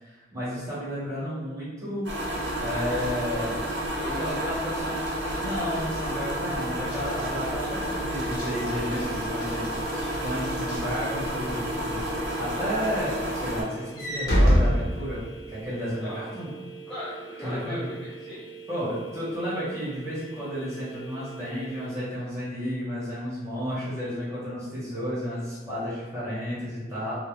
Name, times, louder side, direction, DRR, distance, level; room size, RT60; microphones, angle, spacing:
voice 1, 0.0-2.1 2.6-3.6 4.1-4.9 5.3-15.2 15.5-16.5 17.4-17.8 18.7-27.1, equal, 15° right, -11 dB, 1.0 m, -32 dB
sound 1, 2.0-13.6, equal, 75° right, 0.7 m, -30 dB
voice 2, 3.9-4.5 16.0-16.2 16.9-18.5, left 1 dB, ahead, -12 dB, 0.4 m, -38 dB
Walk footsteps / Slam, 5.8-11.5 12.0-12.3 12.6-15.6, equal, 50° left, 0.7 m, -28 dB
sound 2, 6.8-21.9, right 5 dB, 90° left, 0.5 m, -44 dB
2.3 x 2.0 x 3.2 m, 1.3 s
head